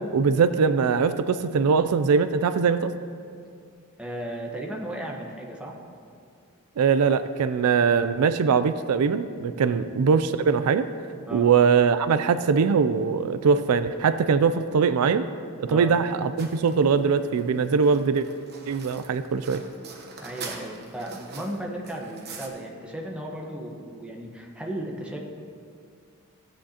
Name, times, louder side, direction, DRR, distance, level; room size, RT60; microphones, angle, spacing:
voice 1, 0.1-2.9 6.8-10.9 11.3-15.3 15.6-18.3 18.7-19.6, right 5 dB, 80° right, 12 dB, 0.4 m, -22 dB
voice 2, 4.0-5.8 9.6-9.8 11.3-11.5 15.7-16.0 20.2-25.2, right 1 dB, 5° right, -1 dB, 1.1 m, -35 dB
sound 1, 16.4-22.5, right 4 dB, 45° right, 1.0 m, -43 dB
16.0 x 8.6 x 2.9 m, 2.3 s
head